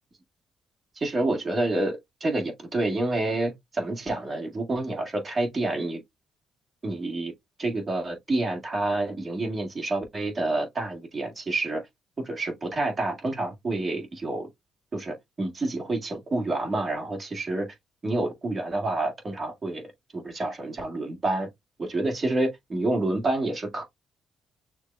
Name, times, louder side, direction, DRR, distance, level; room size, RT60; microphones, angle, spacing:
voice 1, 0.9-6.0 6.8-7.3 7.6-11.8 12.2-14.5 14.9-17.7 18.0-19.8 20.1-21.5 21.8-23.8, right 2 dB, 35° right, 1.7 m, -28 dB
6.3 x 2.2 x 2.4 m
cardioid pair, 90°, 0 cm